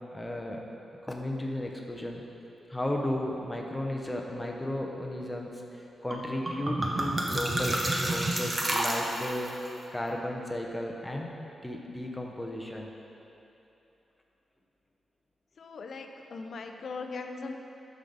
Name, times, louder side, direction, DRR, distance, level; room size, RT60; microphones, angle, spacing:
voice 1, 0.1-0.6 1.0-2.2 2.7-9.5 9.9-11.3 11.6-12.9, left 1 dB, 10° left, 0 dB, 0.7 m, -34 dB
sound 1, 6.1-6.2 6.5-9.5, right 1 dB, 25° right, 0.8 m, -29 dB
voice 2, 15.6-17.6, left 4 dB, 50° left, 4 dB, 0.5 m, -39 dB
10.0 x 6.4 x 4.0 m, 2.9 s
wide cardioid pair, 180°, 0 cm